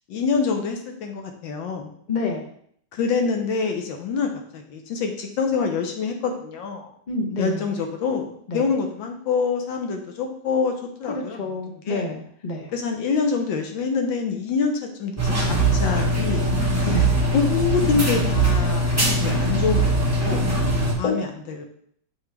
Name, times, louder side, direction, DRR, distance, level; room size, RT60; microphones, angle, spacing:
voice 1, 0.1-1.9 2.9-6.9 7.4-10.7 11.0-11.4 11.9-12.0 12.7-16.5 17.3-19.9 20.2-20.5 21.0-21.3 21.6-21.7, left 5 dB, 75° left, 4 dB, 1.6 m, -26 dB
voice 2, 2.1-2.5 7.1-7.6 8.5-8.7 11.1-12.7 16.9-17.1 21.0-21.2, left 3 dB, 45° left, 1 dB, 0.6 m, -28 dB
sound 1, 15.2-20.9, right 1 dB, 10° right, 1.0 m, -21 dB
7.2 x 4.2 x 3.3 m, 0.63 s
omnidirectional pair, 2.1 m